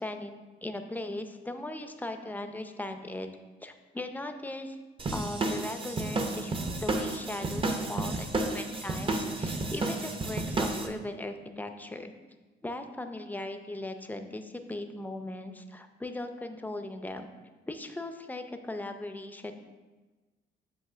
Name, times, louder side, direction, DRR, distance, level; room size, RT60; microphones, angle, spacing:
voice 1, 0.0-3.3 3.6-4.8 5.1-6.5 6.8-12.1 12.6-17.3 17.7-19.6, left 2 dB, 10° left, 6 dB, 0.6 m, -38 dB
sound 1, 5.0-10.9, right 2 dB, 25° right, 0.8 m, -31 dB
8.0 x 2.9 x 6.1 m, 1.3 s
cardioid pair, 90°, 20 cm